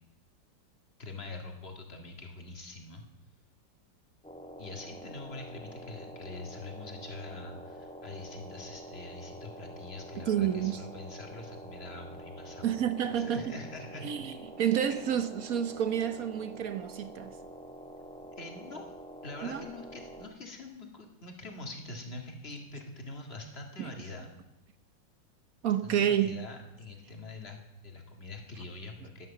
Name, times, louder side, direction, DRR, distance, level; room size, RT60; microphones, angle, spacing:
voice 1, 1.0-3.0 4.6-12.7 13.1-14.1 18.4-18.9 19.2-24.3 25.8-27.6 27.8-29.3, left 2 dB, 30° left, 2.0 m, -44 dB
sound 1, 4.2-20.3, right 1 dB, 5° left, 0.4 m, -47 dB
voice 2, 10.2-10.8 12.6-13.6 14.0-17.3 19.4-19.6 23.8-23.9 25.6-26.4, right 9 dB, 60° right, 1.0 m, -29 dB
11.5 x 11.0 x 7.1 m
omnidirectional pair, 2.2 m